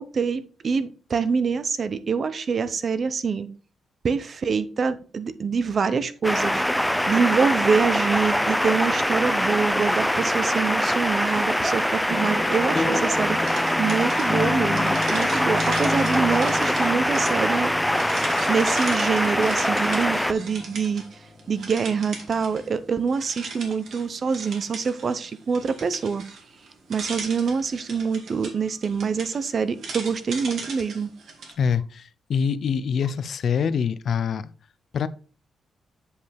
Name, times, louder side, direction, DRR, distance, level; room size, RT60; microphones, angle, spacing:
voice 1, 0.0-3.5 4.0-13.4 13.8-17.7 18.5-21.0 21.5-26.2 26.9-31.1, right 5 dB, 45° right, 0.6 m, -25 dB
sound 1, 6.2-20.3, equal, 5° left, 0.4 m, -23 dB
sound 2, 12.1-22.8, left 3 dB, 25° left, 1.4 m, -32 dB
sound 3, 13.4-21.1 21.4-22.8 23.1-31.5, right 4 dB, 70° right, 2.1 m, -39 dB
voice 2, 31.6-34.5 34.9-35.1, left 7 dB, 65° left, 0.5 m, -25 dB
8.1 x 5.3 x 3.4 m
cardioid pair, 105°, 0 cm